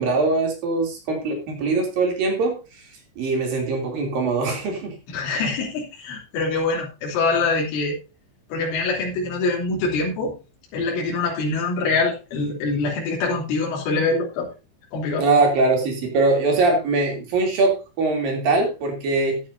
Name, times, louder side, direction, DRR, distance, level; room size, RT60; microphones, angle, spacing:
voice 1, 0.0-2.6 3.2-5.0 15.2-19.4, right 3 dB, 50° right, 2 dB, 4.5 m, -22 dB
voice 2, 5.1-8.0 8.5-10.3 10.7-14.5 14.9-15.3, left 3 dB, 75° left, -3 dB, 5.8 m, -24 dB
15.5 x 10.0 x 2.7 m, 0.28 s
omnidirectional pair, 5.6 m